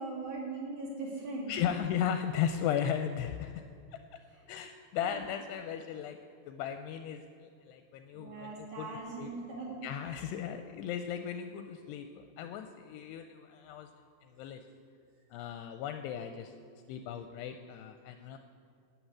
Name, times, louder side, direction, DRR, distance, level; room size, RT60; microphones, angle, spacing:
voice 1, 0.0-1.6 4.3-4.4 5.0-5.2 8.1-9.8 10.1-10.2, right 3 dB, 50° right, -3 dB, 3.6 m, -40 dB
voice 2, 1.5-3.5 4.5-6.2 6.5-8.9 9.2-9.3 9.8-13.9 14.2-14.6 15.3-16.5 16.9-18.4, left 9 dB, 80° left, 7 dB, 2.6 m, -36 dB
11.5 x 8.5 x 8.6 m, 2.4 s
omnidirectional pair, 5.1 m